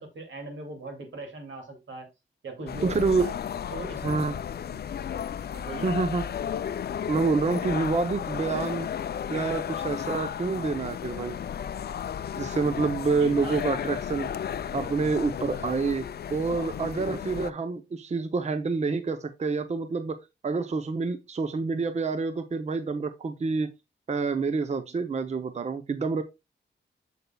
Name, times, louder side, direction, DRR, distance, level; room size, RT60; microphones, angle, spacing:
voice 1, 0.0-2.1 2.4-3.3 3.7-4.0 4.7-4.9 5.5-5.9 13.2-13.6 24.8-25.0, right 2 dB, 80° right, 2.4 m, -40 dB
sound 1, 2.7-17.5, left 8 dB, 55° left, 0.4 m, -34 dB
voice 2, 2.8-3.3 4.0-4.3 5.8-6.2 7.1-8.9 9.3-11.4 12.4-14.3 14.7-16.0 16.3-20.2 20.4-23.7 24.1-26.2, right 4 dB, 35° right, 0.6 m, -27 dB
8.3 x 6.8 x 2.2 m
wide cardioid pair, 155°, 20 cm